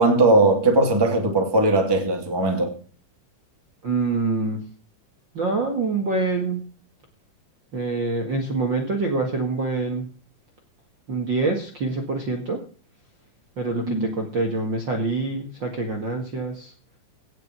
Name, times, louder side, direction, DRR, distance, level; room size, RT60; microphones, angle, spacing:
voice 1, 0.0-2.7 13.9-14.1, right 2 dB, 10° right, 2.1 m, -19 dB
voice 2, 3.8-4.6 5.3-6.6 7.7-10.1 11.1-12.6 13.6-16.7, right 3 dB, 40° right, 2.2 m, -25 dB
17.5 x 6.2 x 6.1 m
omnidirectional pair, 4.0 m